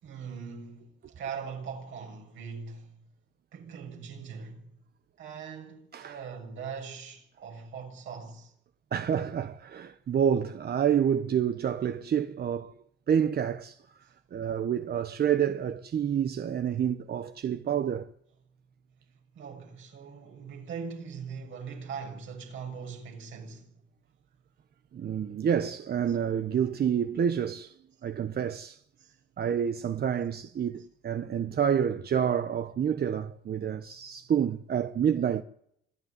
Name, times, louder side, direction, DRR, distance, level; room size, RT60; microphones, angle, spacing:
voice 1, 0.0-3.0 3.5-4.7 5.2-8.5 19.3-23.7 26.1-26.2 29.0-29.1, right 6 dB, 80° right, 6.6 m, -41 dB
voice 2, 8.9-12.7 13.1-13.8 14.3-18.1 24.9-27.7 28.0-28.8 29.4-35.4, right 8 dB, 50° right, 1.0 m, -28 dB
26.5 x 12.0 x 9.6 m
cardioid pair, 90°, 20 cm